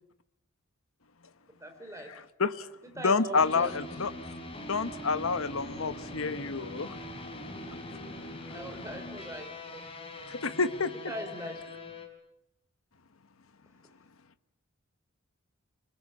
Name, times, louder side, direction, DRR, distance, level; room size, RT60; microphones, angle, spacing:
voice 1, 1.6-2.1 2.8-3.7 8.5-9.8 10.9-11.5, equal, 15° right, 5 dB, 4.7 m, -41 dB
voice 2, 3.0-4.1 4.7-6.9 10.3-10.9, left 4 dB, 85° left, 12 dB, 1.1 m, -28 dB
sound 1, 3.3-12.1, left 1 dB, 25° left, 4.1 m, -42 dB
27.5 x 22.0 x 8.3 m, 0.82 s
head